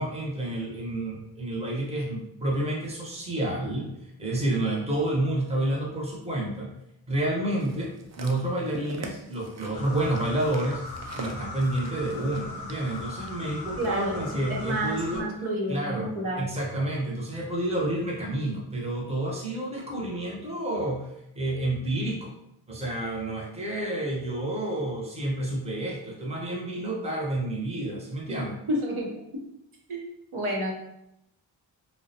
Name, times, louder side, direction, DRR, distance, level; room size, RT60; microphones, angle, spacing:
voice 1, 0.0-3.9 4.2-6.7 7.1-10.8 11.1-15.3 15.7-16.1 16.4-21.1 21.3-22.3 22.7-28.6, right 1 dB, 15° right, -2 dB, 0.7 m, -29 dB
sound 1, 7.6-14.0 14.7-14.8, right 4 dB, 35° right, 0.4 m, -45 dB
sound 2, 9.7-15.2, left 3 dB, 50° left, 0.7 m, -39 dB
voice 2, 13.8-14.1 14.5-16.4 28.3-28.4 28.7-29.1 29.9-30.0 30.3-30.7, right 1 dB, 80° right, -3 dB, 0.9 m, -29 dB
2.3 x 2.1 x 2.7 m, 0.80 s
cardioid pair, 45°, 48 cm